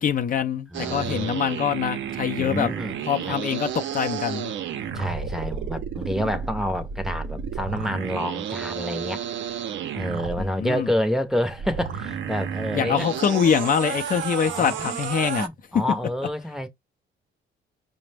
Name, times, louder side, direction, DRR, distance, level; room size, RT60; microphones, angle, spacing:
voice 1, 0.0-2.7 3.1-4.5 10.4-10.9 12.7-15.5, left 7 dB, 45° left, 0.5 m, -24 dB
voice 2, 0.7-1.3 2.4-3.0 3.3-3.4 4.9-9.3 9.9-13.1 14.5-15.0 15.4-16.7, equal, ahead, 0.6 m, -28 dB
sound 1, 0.7-10.5 11.5-15.5, right 8 dB, 70° right, 0.6 m, -32 dB
4.9 x 2.1 x 3.3 m
cardioid pair, 90°, 20 cm